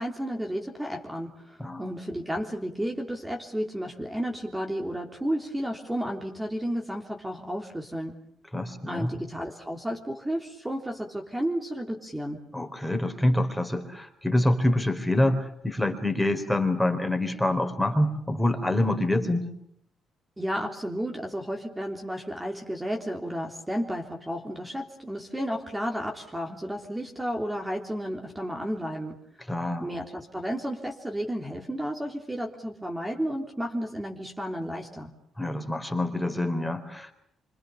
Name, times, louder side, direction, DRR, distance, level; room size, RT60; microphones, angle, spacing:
voice 1, 0.0-8.2 8.9-12.4 20.4-29.2 29.8-35.1, equal, 10° right, 2 dB, 3.5 m, -32 dB
voice 2, 8.5-9.1 12.5-19.5 29.5-29.9 35.4-37.1, left 1 dB, 5° left, 6 dB, 4.2 m, -26 dB
26.0 x 26.0 x 7.0 m, 0.69 s
cardioid pair, 90°, 0 cm